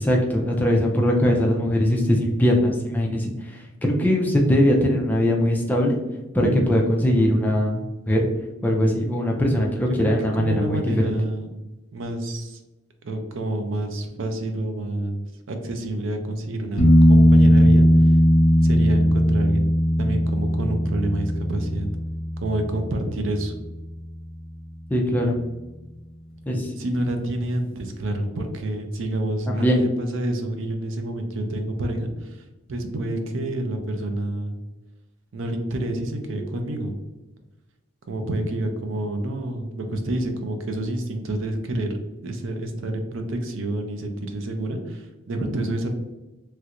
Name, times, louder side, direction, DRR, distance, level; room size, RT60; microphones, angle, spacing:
voice 1, 0.0-6.0 6.3-8.3 8.6-11.1 24.9-25.4 26.5-26.7 29.5-29.8, equal, 10° left, 0 dB, 0.3 m, -21 dB
voice 2, 10.0-11.5 11.9-12.6 13.0-18.1 18.6-19.7 20.0-21.9 22.4-23.5 26.8-32.4 32.7-34.6 35.3-36.9 38.1-42.0 42.2-45.9, right 1 dB, 65° right, 6 dB, 0.5 m, -28 dB
sound 1, 16.8-24.4 27.4-27.5, equal, 60° left, 0.7 m, -18 dB
3.1 x 2.4 x 2.9 m, 1.1 s
head